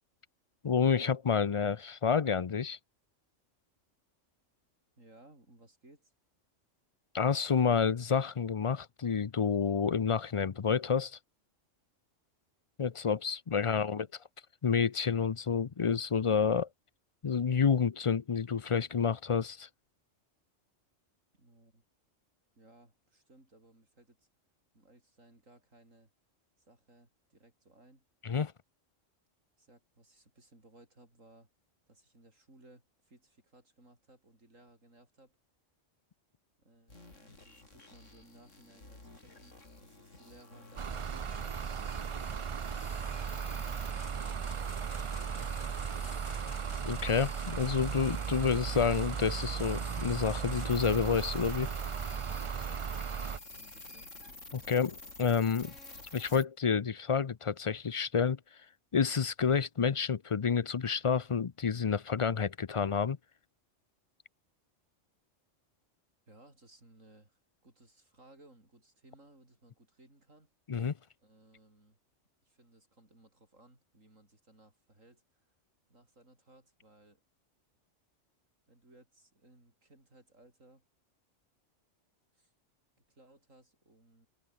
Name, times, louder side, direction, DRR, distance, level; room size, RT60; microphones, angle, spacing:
voice 1, 0.6-2.8 7.1-11.2 12.8-14.1 14.6-16.7 17.2-19.7 28.2-28.5 46.8-51.7 54.5-55.7 56.1-58.4 58.9-63.2 70.7-70.9, left 6 dB, 40° left, 0.4 m, -29 dB
voice 2, 5.0-6.1 21.3-21.8 22.6-24.3 24.7-26.1 26.6-28.1 29.6-31.5 31.9-35.4 36.6-41.6 53.1-54.1 66.3-70.5 71.2-72.0 72.4-75.5 75.9-77.2 78.7-80.9 82.3-82.5 83.1-84.3, right 2 dB, 85° right, 7.0 m, -61 dB
sound 1, 36.9-56.4, left 2 dB, 75° left, 5.0 m, -50 dB
sound 2, 40.8-53.4, right 7 dB, 55° right, 0.3 m, -36 dB
omnidirectional pair, 1.3 m